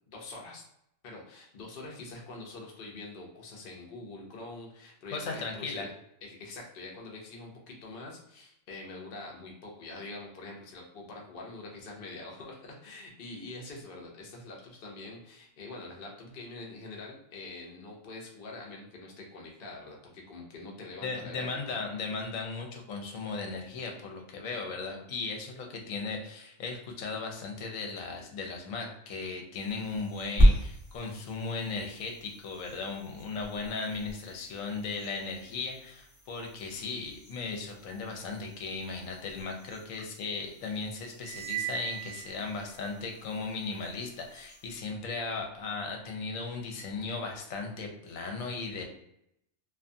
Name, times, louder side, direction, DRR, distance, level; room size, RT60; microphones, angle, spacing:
voice 1, 0.1-0.6 1.0-5.9 6.2-21.8, left 2 dB, 50° left, -1 dB, 0.7 m, -45 dB
voice 2, 5.1-5.9 21.0-48.8, left 4 dB, 75° left, 2 dB, 1.0 m, -37 dB
sound 1, 29.5-44.8, equal, 15° right, 1.0 m, -34 dB
sound 2, 41.2-43.1, right 12 dB, 70° right, 0.9 m, -38 dB
2.5 x 2.3 x 2.6 m, 0.77 s
omnidirectional pair, 1.4 m